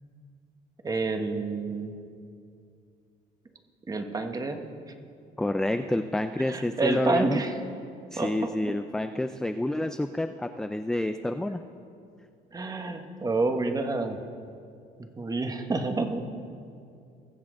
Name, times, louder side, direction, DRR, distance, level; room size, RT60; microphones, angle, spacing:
voice 1, 0.8-2.0 3.9-4.6 6.4-7.5 8.2-8.5 12.5-14.2 15.0-16.2, right 3 dB, 20° right, 6 dB, 1.1 m, -28 dB
voice 2, 5.4-7.4 8.1-11.6, left 1 dB, 5° left, 8 dB, 0.3 m, -28 dB
21.0 x 7.4 x 3.7 m, 2.4 s
cardioid pair, 110°, 17 cm